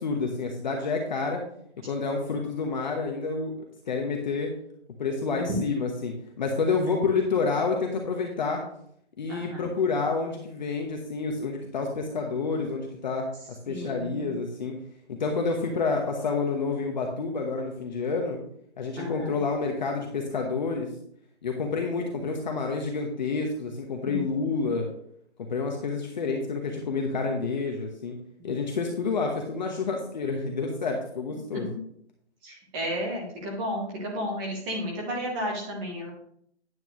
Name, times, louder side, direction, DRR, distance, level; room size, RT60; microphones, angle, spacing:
voice 1, 0.0-1.4 1.8-3.5 3.9-4.5 5.0-8.6 9.2-14.7 15.1-18.4 18.8-20.9 21.4-24.9 25.4-28.2 28.4-31.7, left 4 dB, 40° left, 2 dB, 1.1 m, -29 dB
voice 2, 9.3-9.7 13.7-14.4 19.0-19.4 24.1-24.7 28.4-28.5 31.5-31.8 32.4-36.1, equal, 10° right, -2 dB, 0.9 m, -33 dB
9.2 x 8.3 x 3.1 m, 0.69 s
hypercardioid pair, 170°, 34 cm